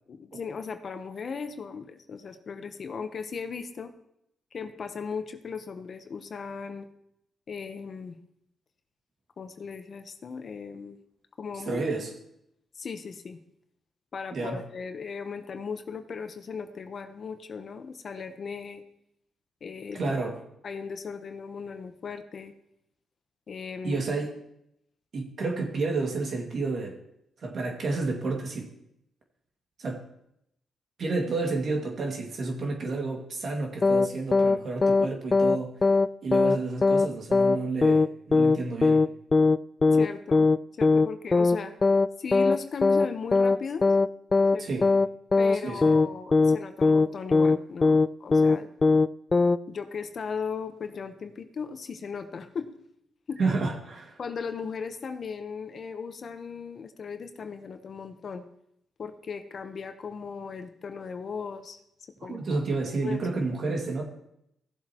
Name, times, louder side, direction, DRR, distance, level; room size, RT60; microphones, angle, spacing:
voice 1, 0.1-3.9 4.5-6.9 7.5-8.2 9.4-11.0 11.4-11.8 12.8-13.4 14.1-18.8 19.6-20.1 20.6-22.5 23.5-24.0 39.9-40.5 40.8-41.7 42.2-43.9 44.5-44.9 45.4-48.7 49.7-52.7 53.3-53.4 54.2-58.4 59.0-61.8 62.2-62.4 63.0-63.2, left 5 dB, 55° left, 8 dB, 1.0 m, -37 dB
voice 2, 11.7-12.1 14.3-14.6 19.9-20.4 23.8-24.3 25.1-27.0 27.4-28.7 29.8-30.0 31.0-35.7 36.2-39.0 44.6-44.9 45.6-46.0 53.4-54.2 62.2-64.0, right 3 dB, 60° right, 1 dB, 2.2 m, -30 dB
sound 1, 33.8-34.1 34.3-34.6 34.8-35.1 35.3-35.6 35.8-36.1 36.3-36.6 36.8-37.1 37.3-37.6 37.8-38.1 38.3-38.6 38.8-39.1 39.3-39.6 39.8-40.1 40.3-40.6 40.8-41.1 41.3-41.6 41.8-42.1 42.3-42.6 42.8-43.1 43.3-43.6 43.8-44.1 44.3-44.6 44.8-45.1 45.3-45.6 45.8-46.1 46.3-46.6 46.8-47.1 47.3-47.6 47.8-48.1 48.3-48.6 48.8-49.1 49.3-49.6, left 3 dB, 30° left, 0.3 m, -20 dB
16.5 x 7.5 x 3.0 m, 0.78 s
cardioid pair, 75°, 0 cm